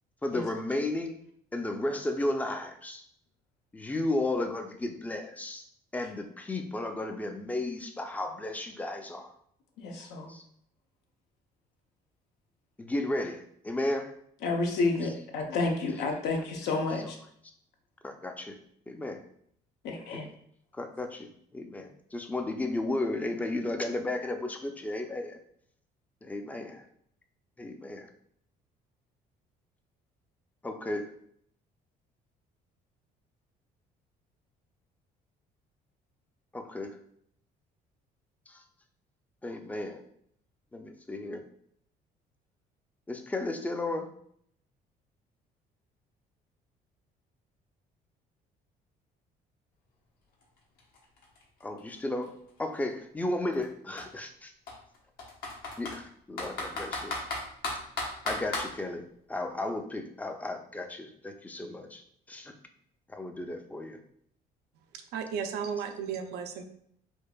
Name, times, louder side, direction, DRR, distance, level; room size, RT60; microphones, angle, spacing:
voice 1, 0.2-1.2 1.5-3.0 3.7-5.7 5.9-9.3 10.3-10.4 12.8-14.2 15.0-15.1 16.9-17.0 18.0-18.6 18.9-19.2 20.1-20.3 20.7-25.4 26.2-26.8 27.6-28.1 30.6-31.1 36.5-37.0 38.5-38.6 39.4-40.0 40.7-41.4 43.1-44.1 51.6-52.3 52.6-54.5 55.8-57.2 58.2-62.5 63.1-64.0, left 2 dB, 10° left, 5 dB, 0.4 m, -34 dB
voice 2, 9.8-10.3 14.4-17.2 19.8-20.3, left 3 dB, 85° left, 2 dB, 0.7 m, -30 dB
Computer keyboard, 50.4-50.5 50.8-52.7 53.5-53.7 54.0-54.1 54.7-56.0 56.4-58.7, left 2 dB, 65° left, 1.0 m, -35 dB
voice 3, 65.1-66.6, right 6 dB, 75° right, 6 dB, 0.5 m, -34 dB
4.5 x 2.5 x 2.3 m, 0.67 s
cardioid pair, 110°, 17 cm